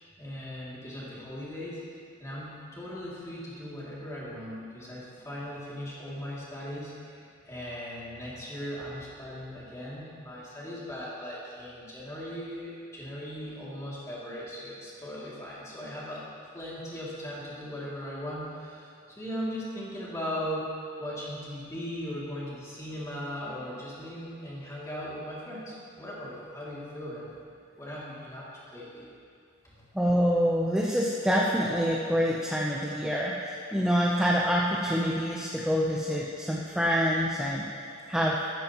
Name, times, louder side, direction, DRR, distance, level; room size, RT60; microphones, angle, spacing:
voice 1, 0.0-1.8 2.2-16.2 16.5-20.7 21.0-27.4 27.7-28.5 28.7-29.1, equal, 15° left, -8 dB, 2.7 m, -38 dB
voice 2, 29.9-37.6 38.1-38.4, equal, 5° right, -5 dB, 0.7 m, -26 dB
13.5 x 13.5 x 3.1 m, 2.4 s
head